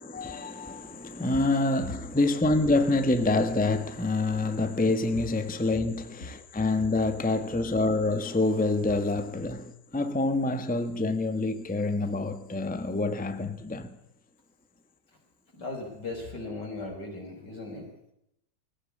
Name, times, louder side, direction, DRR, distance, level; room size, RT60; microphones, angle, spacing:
voice 1, 0.0-13.9, left 2 dB, 5° left, 1.1 m, -27 dB
voice 2, 15.6-17.9, left 2 dB, 75° left, 6.3 m, -37 dB
20.5 x 16.0 x 8.6 m
omnidirectional pair, 1.9 m